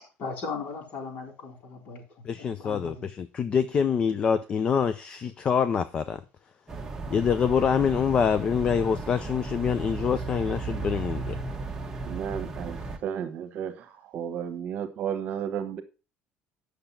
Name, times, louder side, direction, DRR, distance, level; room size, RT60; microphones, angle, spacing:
voice 1, 0.2-2.0 2.3-3.1, left 4 dB, 45° left, 4.3 m, -37 dB
voice 2, 2.2-6.2 7.1-11.4, left 7 dB, 25° left, 0.5 m, -25 dB
sound 1, 6.7-13.0, right 3 dB, 10° right, 1.3 m, -35 dB
voice 3, 12.1-15.8, right 8 dB, 45° right, 1.3 m, -33 dB
8.8 x 6.6 x 5.6 m
cardioid pair, 175°, 4 cm